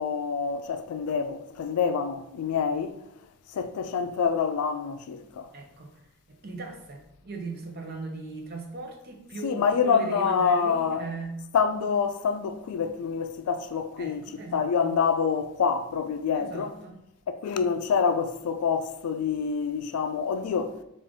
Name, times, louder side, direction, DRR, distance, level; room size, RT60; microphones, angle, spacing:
voice 1, 0.0-3.0 3.5-5.5 9.4-11.1 11.5-14.3 14.5-16.7 17.3-20.8, left 6 dB, 90° left, 0.3 m, -26 dB
voice 2, 5.5-5.9 6.3-11.4 14.0-15.0 16.3-17.0, right 3 dB, 45° right, 0.6 m, -38 dB
3.6 x 2.5 x 3.5 m
head